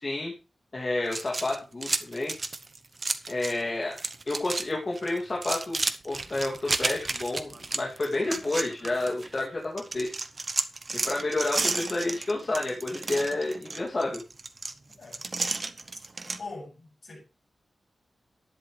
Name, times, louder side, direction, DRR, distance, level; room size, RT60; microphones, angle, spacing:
voice 1, 0.0-0.3 0.7-2.3 3.3-4.0 4.3-10.1 11.0-14.2, left 2 dB, 35° left, -2 dB, 2.6 m, -30 dB
sound 1, 1.1-3.6 3.9-4.7 5.0-9.4 9.8-16.4, right 3 dB, 35° right, 0.9 m, -32 dB
voice 2, 16.4-17.2, left 3 dB, 55° left, -1 dB, 7.7 m, -42 dB
12.0 x 10.5 x 3.3 m, 0.31 s
wide cardioid pair, 145°, 0 cm